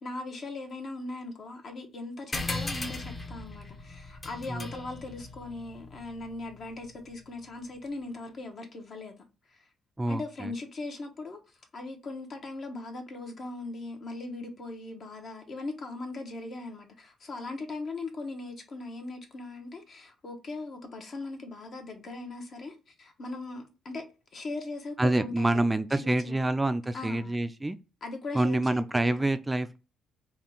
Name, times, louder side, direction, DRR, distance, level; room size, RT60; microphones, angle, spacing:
voice 1, 0.0-9.1 10.1-11.4 11.7-24.1 24.3-25.7 26.0-26.5 26.9-27.4 28.0-29.4, left 2 dB, 55° left, 1.0 m, -39 dB
sound 1, 2.3-7.2, left 2 dB, 30° left, 0.8 m, -38 dB
voice 2, 10.0-10.5 25.0-27.8 28.3-29.8, right 1 dB, 15° right, 0.3 m, -27 dB
3.6 x 2.5 x 3.7 m
cardioid pair, 90°, 0 cm